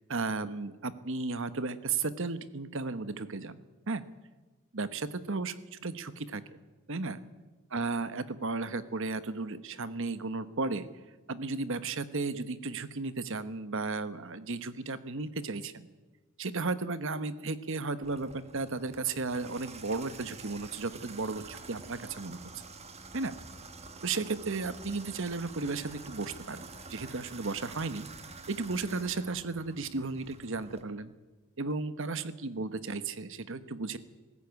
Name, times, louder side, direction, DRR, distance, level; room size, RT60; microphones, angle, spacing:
voice 1, 0.1-4.0 4.7-5.5 5.8-6.4 6.9-7.2 7.7-10.9 11.3-15.9 16.4-22.4 23.1-23.3 24.0-28.1 28.5-31.1 31.6-34.0, right 3 dB, 60° right, 13 dB, 1.1 m, -34 dB
Water tap faucet / Bathtub (filling or washing), 18.0-30.8, right 4 dB, 30° right, 1.5 m, -48 dB
sound 1, 25.5-27.4, left 2 dB, 30° left, 4.0 m, -62 dB
20.0 x 14.0 x 9.5 m, 1.2 s
head